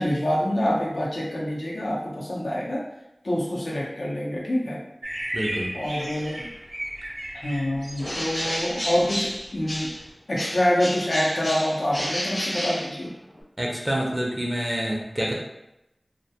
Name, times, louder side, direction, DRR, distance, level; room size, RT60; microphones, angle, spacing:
voice 1, 0.0-2.8 3.2-4.8 5.7-6.5 7.3-9.9 10.3-13.1, left 1 dB, 85° left, -4 dB, 0.6 m, -26 dB
sound 1, 5.0-10.1, right 1 dB, 85° right, 0.5 m, -35 dB
voice 2, 5.3-5.7 13.6-15.3, equal, 20° right, -2 dB, 0.5 m, -27 dB
Bird, 8.0-10.1 10.4-13.4, equal, 60° left, 0.9 m, -31 dB
2.2 x 2.1 x 2.7 m, 0.88 s
wide cardioid pair, 60°, 0 cm